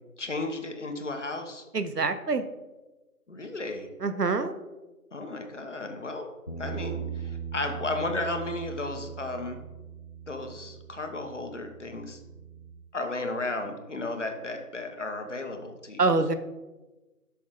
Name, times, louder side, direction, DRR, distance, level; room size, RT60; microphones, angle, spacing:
voice 1, 0.2-1.6 3.3-3.9 5.1-6.2 6.6-9.6 10.3-12.2 12.9-16.0, left 2 dB, 50° left, 5 dB, 1.4 m, -34 dB
voice 2, 1.7-2.4 4.0-4.6 16.0-16.3, right 3 dB, 85° right, 11 dB, 1.1 m, -25 dB
Bass guitar, 6.5-12.7, right 7 dB, 35° left, 0.8 m, -40 dB
11.5 x 6.1 x 3.8 m, 1.1 s
figure-of-eight pair, 170°, 46 cm